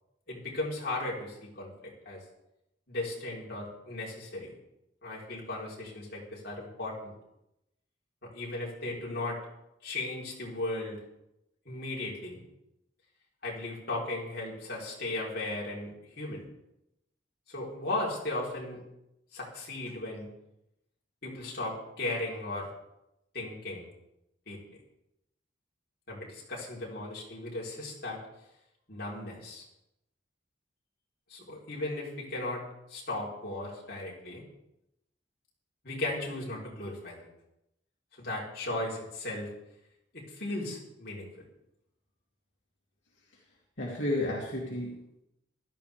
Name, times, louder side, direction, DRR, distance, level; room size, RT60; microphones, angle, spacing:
voice 1, 0.3-2.2 2.9-4.5 5.0-7.1 8.3-9.4 9.8-11.0 11.7-12.4 13.4-16.5 17.5-18.8 19.3-20.3 21.2-22.7 23.3-23.9 24.5-24.6 26.1-28.2 28.9-29.7 31.3-32.6 32.9-34.4 35.8-37.3 38.1-39.5 40.3-41.3, left 2 dB, 50° left, -5 dB, 4.0 m, -36 dB
voice 2, 43.8-45.2, left 1 dB, 70° left, -5 dB, 2.7 m, -32 dB
16.5 x 12.5 x 3.5 m, 0.87 s
head